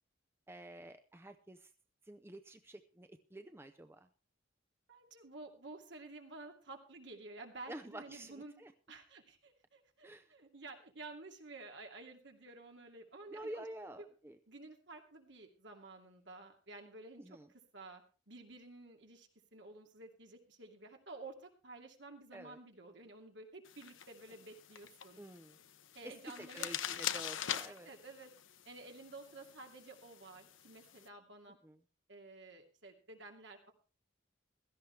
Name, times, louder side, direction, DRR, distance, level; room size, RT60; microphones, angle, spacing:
voice 1, 0.5-1.7 2.1-4.1 7.7-8.7 10.0-10.3 13.3-14.4 17.2-17.5 22.3-22.6 25.2-25.6 26.0-27.9 31.6-31.8, right 1 dB, 10° right, 8 dB, 0.6 m, -49 dB
voice 2, 4.9-8.5 8.9-14.1 14.5-17.4 17.7-25.2 25.9-26.7 27.8-28.3 28.6-31.6 32.1-33.7, right 3 dB, 65° right, 3 dB, 2.6 m, -52 dB
sound 1, 23.7-31.1, left 10 dB, 80° left, 0.8 m, -44 dB
16.5 x 13.5 x 3.3 m, 0.34 s
head